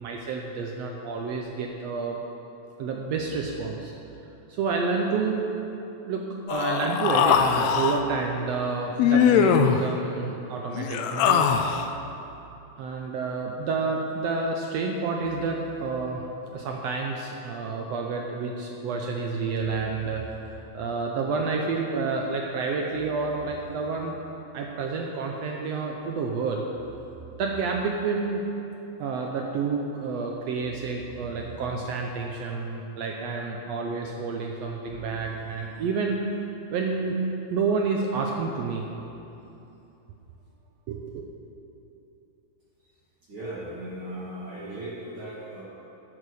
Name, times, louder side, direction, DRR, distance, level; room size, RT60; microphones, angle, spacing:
voice 1, 0.0-2.2 2.8-3.9 4.5-5.5 6.0-11.5 12.8-16.2 16.5-24.2 24.5-26.7 27.4-28.4 29.0-36.2 36.7-37.2 37.5-38.9 40.9-41.3, right 4 dB, 75° right, 1 dB, 1.5 m, -29 dB
Human voice, 6.5-8.0 9.0-9.8 10.7-11.9, left 7 dB, 85° left, 1.6 m, -21 dB
voice 2, 43.3-45.6, right 1 dB, 50° right, -6 dB, 1.9 m, -37 dB
11.0 x 7.7 x 6.4 m, 2.9 s
omnidirectional pair, 3.7 m